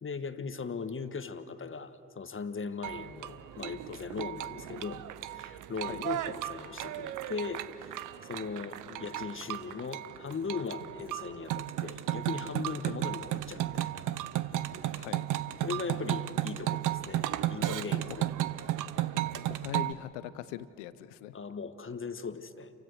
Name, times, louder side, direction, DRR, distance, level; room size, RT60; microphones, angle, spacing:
voice 1, 0.0-5.0 5.3-14.1 15.6-18.3 18.6-18.7 21.3-22.7, left 5 dB, 35° left, 10 dB, 1.5 m, -39 dB
sound 1, 2.8-19.9, right 13 dB, 65° right, 0.8 m, -34 dB
voice 2, 14.9-15.3 19.6-21.3, left 12 dB, 85° left, 16 dB, 0.7 m, -41 dB
29.0 x 16.0 x 6.5 m, 2.8 s
hypercardioid pair, 40°, 34 cm